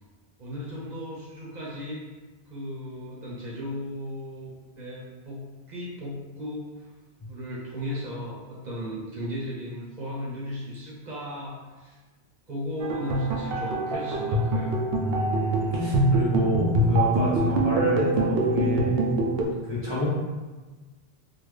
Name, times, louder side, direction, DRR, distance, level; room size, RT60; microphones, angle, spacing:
voice 1, 0.4-2.0 2.5-4.5 4.8-6.9 7.3-12.0 12.5-14.8, equal, 45° right, -6 dB, 0.9 m, -36 dB
sound 1, 12.8-19.4, right 2 dB, 70° right, 0.8 m, -24 dB
voice 2, 15.0-19.0 19.4-20.1, left 1 dB, 35° left, -8 dB, 0.5 m, -29 dB
3.6 x 2.3 x 3.2 m, 1.3 s
omnidirectional pair, 1.0 m